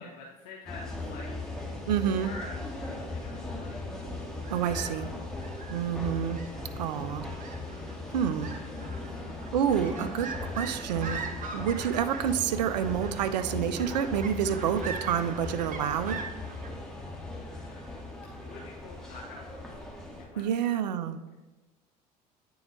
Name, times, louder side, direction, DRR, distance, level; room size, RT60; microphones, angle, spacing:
voice 1, 0.0-1.5 2.2-3.9 4.3-5.1 5.4-5.5 9.1-9.5 17.3-18.1 18.4-19.7 20.2-20.5, left 3 dB, 65° left, -2 dB, 1.1 m, -47 dB
sound 1, 0.7-20.3, left 2 dB, 5° left, 1.8 m, -38 dB
voice 2, 1.9-2.3 4.5-5.1 5.7-6.4 6.8-7.3 8.1-8.6 9.5-11.2 11.5-16.2 20.4-21.3, right 9 dB, 75° right, 11 dB, 0.5 m, -28 dB
sound 2, 4.3-16.7, right 5 dB, 40° right, 1.3 m, -43 dB
8.7 x 4.5 x 4.6 m, 1.1 s
hypercardioid pair, 65°, 21 cm